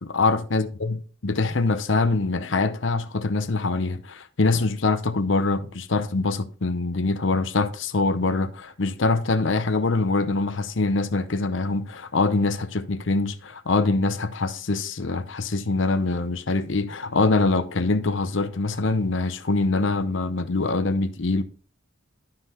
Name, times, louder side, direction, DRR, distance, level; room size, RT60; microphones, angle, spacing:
voice 1, 0.0-21.4, left 3 dB, 60° left, 0.8 m, -24 dB
12.0 x 5.7 x 3.0 m
head